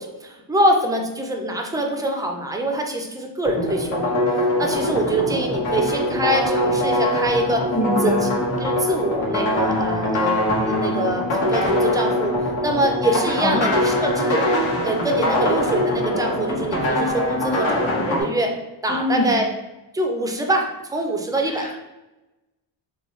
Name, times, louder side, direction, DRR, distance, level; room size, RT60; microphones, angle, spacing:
voice 1, 0.0-7.7 8.0-8.3 8.6-12.3 12.6-14.5 14.8-18.6 18.8-19.5 19.9-21.7, right 1 dB, 10° right, 2 dB, 0.4 m, -24 dB
sound 1, 3.4-18.2, left 1 dB, 90° left, 1.2 m, -22 dB
voice 2, 7.7-8.3 13.4-13.6 18.9-19.3 21.5-21.7, left 2 dB, 15° left, -1 dB, 0.8 m, -23 dB
3.7 x 2.2 x 3.0 m, 1.0 s
cardioid pair, 105°, 45 cm